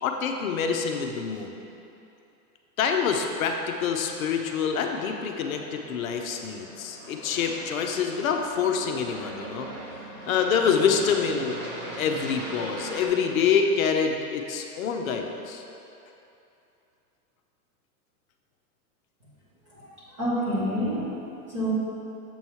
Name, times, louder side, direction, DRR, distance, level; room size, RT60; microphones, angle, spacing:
voice 1, 0.0-1.6 2.8-9.7 10.2-11.6 12.0-15.6, left 6 dB, 60° left, 3 dB, 0.6 m, -26 dB
Aircraft, 3.9-13.1, right 1 dB, 50° right, 1.5 m, -41 dB
voice 2, 19.7-21.7, equal, 20° right, -9 dB, 0.5 m, -29 dB
7.0 x 3.1 x 5.5 m, 2.8 s
supercardioid pair, 180°, 48 cm